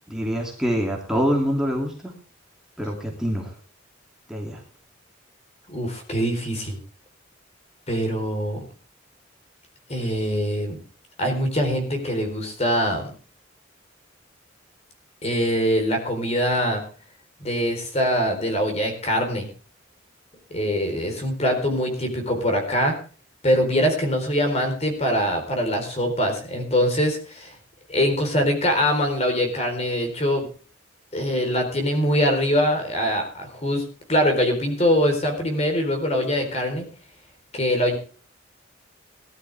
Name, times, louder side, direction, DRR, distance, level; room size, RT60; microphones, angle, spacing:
voice 1, 0.1-2.1 2.8-3.5 4.3-4.6, equal, 5° right, -1 dB, 2.7 m, -25 dB
voice 2, 5.7-6.8 7.9-8.6 9.9-10.8 11.2-13.1 15.2-16.8 17.4-19.5 20.5-23.0 23.4-27.5 27.9-30.5 31.1-33.8 34.1-36.9 37.5-38.0, equal, 35° left, 4 dB, 4.1 m, -23 dB
18.5 x 12.5 x 3.5 m, 0.38 s
head